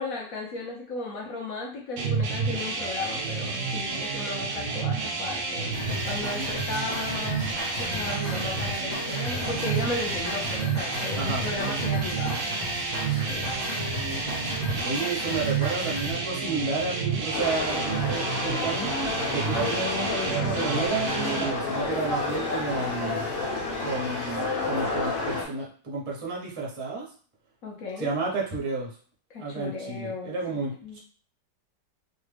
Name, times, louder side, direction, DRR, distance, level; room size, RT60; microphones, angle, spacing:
voice 1, 0.0-5.7 6.0-7.4 7.8-12.4 13.3-13.5 27.6-28.1 29.3-30.3 30.8-31.0, left 3 dB, 60° left, -2 dB, 1.1 m, -35 dB
sound 1, 2.0-21.5, right 5 dB, 90° right, 1.3 m, -30 dB
sound 2, 5.7-16.1, left 2 dB, 30° left, 0.8 m, -35 dB
voice 2, 14.8-18.9 19.3-23.3 23.8-27.0 28.0-28.9 29.4-31.0, right 3 dB, 35° right, -2 dB, 0.5 m, -31 dB
sound 3, 17.3-25.4, left 3 dB, 80° left, 1.5 m, -30 dB
3.3 x 2.3 x 3.3 m, 0.43 s
omnidirectional pair, 1.9 m